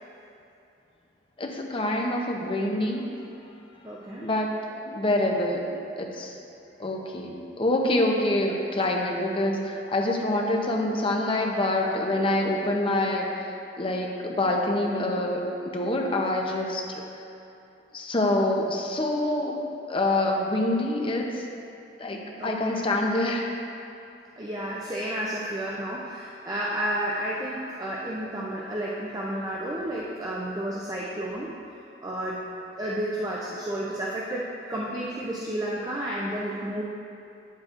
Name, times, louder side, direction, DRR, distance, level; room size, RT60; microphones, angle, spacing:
voice 1, 1.4-3.2 4.2-5.7 6.0-6.3 6.8-16.8 17.9-19.6 19.9-21.5 22.0-23.5, left 1 dB, 30° left, 1 dB, 0.7 m, -26 dB
voice 2, 3.8-4.3 22.4-22.8 24.4-31.5 32.0-32.5 32.8-36.8, right 1 dB, 20° right, -5 dB, 0.5 m, -31 dB
9.0 x 7.4 x 2.5 m, 2.7 s
head